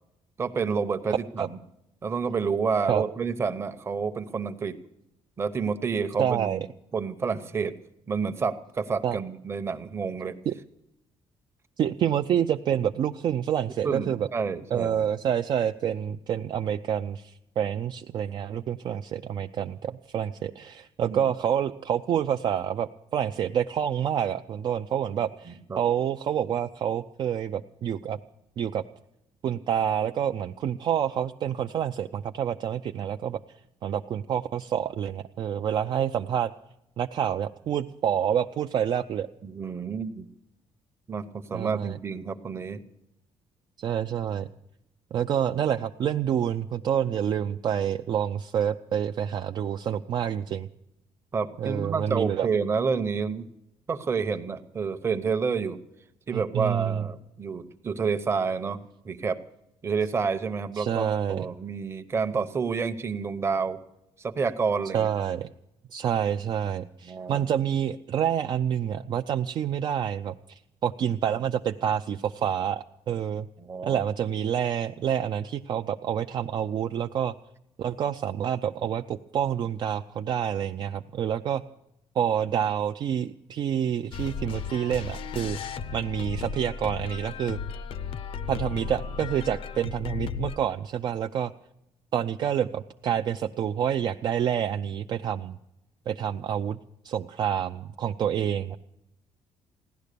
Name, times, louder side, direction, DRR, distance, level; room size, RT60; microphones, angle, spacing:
voice 1, 0.4-1.6 2.0-4.7 5.4-6.6 6.9-7.8 8.1-10.4 13.8-15.1 21.0-21.2 25.5-25.8 39.4-40.3 41.1-42.8 51.3-53.5 53.9-55.8 56.3-58.8 59.0-59.4 59.8-63.8 64.2-65.1 67.1-67.4 73.6-74.0, right 5 dB, 25° right, 9 dB, 0.8 m, -29 dB
voice 2, 1.1-1.5 2.9-3.0 6.2-6.6 9.0-9.2 10.5-10.6 11.8-14.3 14.7-28.2 28.6-28.8 29.4-33.4 33.8-36.5 37.0-39.3 41.5-42.0 43.8-44.5 45.1-50.7 51.6-52.5 56.3-57.1 60.8-61.5 64.9-65.5 65.9-73.5 73.8-77.3 77.8-81.6 82.2-85.6 85.9-87.6 88.5-91.5 92.1-95.6 96.1-96.8 97.0-98.8, right 9 dB, 45° right, 6 dB, 0.5 m, -28 dB
sound 1, 84.1-90.6, left 6 dB, 60° left, 0.7 m, -35 dB
16.5 x 11.5 x 6.8 m, 0.84 s
cardioid pair, 165°, 11 cm